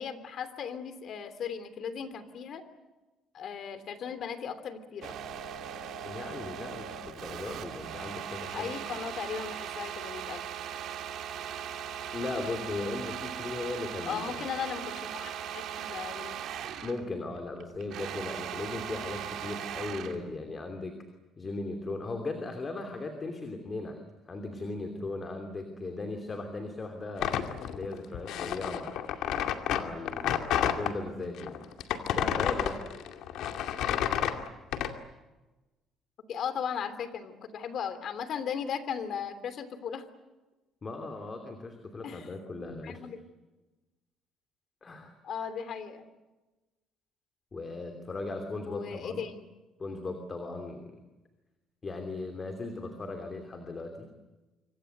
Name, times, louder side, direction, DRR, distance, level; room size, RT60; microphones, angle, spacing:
voice 1, 0.0-2.6 3.3-5.1 8.5-10.4 14.0-16.5 36.3-40.1 42.0-42.3 42.8-43.2 45.2-46.1 48.7-49.5, left 7 dB, 50° left, 12 dB, 3.0 m, -37 dB
sound 1, 5.0-17.0 17.4-20.2, right 9 dB, 60° right, 2.9 m, -39 dB
voice 2, 6.0-8.8 12.1-14.5 16.8-21.0 21.4-29.0 29.7-31.6 32.1-32.8 40.8-43.0 44.8-45.2 47.5-49.3 49.8-50.9 51.8-54.1, left 3 dB, 25° left, 5 dB, 2.9 m, -37 dB
sound 2, 27.2-30.9 31.4-34.9, left 10 dB, 70° left, 2.4 m, -30 dB
26.5 x 25.5 x 8.0 m, 1.1 s
cardioid pair, 145°, 0 cm